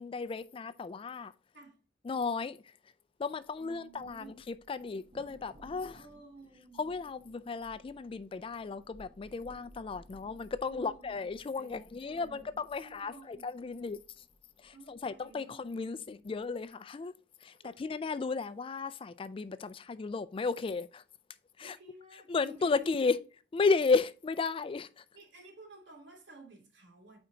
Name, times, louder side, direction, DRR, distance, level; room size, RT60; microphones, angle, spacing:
voice 1, 0.0-1.3 2.1-2.6 3.2-6.0 6.8-14.0 14.6-17.1 17.4-21.0 21.6-21.8 22.3-23.2 23.5-25.0, left 4 dB, 30° left, 0.3 m, -34 dB
Thunder, 3.5-16.7, equal, 40° right, 1.0 m, -60 dB
voice 2, 3.6-4.4 5.9-6.8 10.7-11.2 11.5-13.5 14.7-16.2 17.6-17.8 21.6-23.2 25.1-27.2, right 2 dB, 70° right, 2.7 m, -53 dB
9.0 x 4.4 x 2.7 m
head